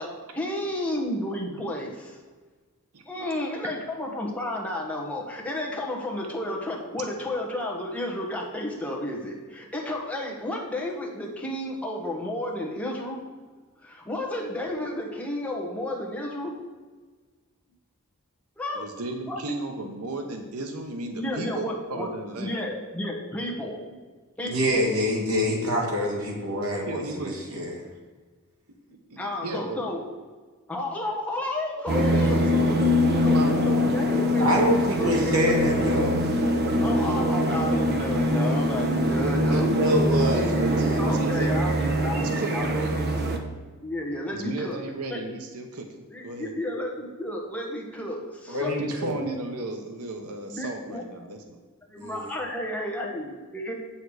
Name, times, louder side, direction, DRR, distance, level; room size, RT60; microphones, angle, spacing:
voice 1, 0.0-2.2 3.0-13.2 13.8-16.6 18.6-18.9 19.3-19.4 21.1-22.1 22.4-24.0 24.4-24.8 29.1-30.0 30.7-32.7 33.2-33.4 33.7-34.5 35.0-35.5 36.8-39.7 41.0-43.5 43.8-44.8 45.1-45.2 46.1-48.9 50.5-51.0 51.9-53.7, left 1 dB, 5° left, -2 dB, 1.4 m, -32 dB
voice 2, 2.9-3.3 18.7-22.7 26.8-27.3 29.1-29.8 31.9-32.9 33.2-34.1 39.2-40.7 41.0-43.1 44.3-46.5 48.8-51.6, right 2 dB, 85° right, 5 dB, 1.0 m, -35 dB
voice 3, 24.4-27.7 34.4-36.2 39.5-41.1 48.5-49.2 52.0-52.2, equal, 70° right, -1 dB, 2.3 m, -26 dB
sound 1, 31.9-43.4, equal, 50° right, 1.0 m, -23 dB
8.1 x 7.0 x 4.8 m, 1.4 s
head